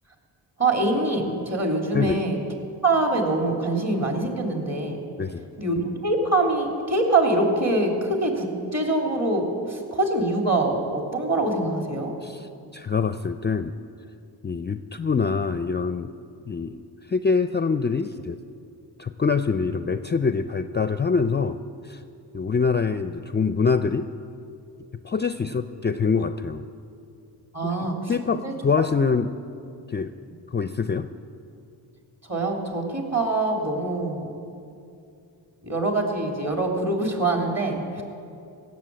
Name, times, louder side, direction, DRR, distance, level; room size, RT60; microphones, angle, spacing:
voice 1, 0.6-2.4 2.8-5.0 5.6-12.1 27.5-28.1 28.4-28.5 32.3-34.3 35.6-38.0, right 2 dB, 35° right, 2 dB, 3.0 m, -24 dB
voice 2, 12.2-13.8 14.4-16.1 16.5-16.8 17.1-18.4 19.0-21.6 21.8-22.0 22.3-24.1 25.0-26.7 28.1-29.3 29.9-30.1 30.5-31.1, left 5 dB, 25° left, 10 dB, 0.4 m, -24 dB
16.5 x 7.2 x 8.4 m, 2.5 s
cardioid pair, 55°, 45 cm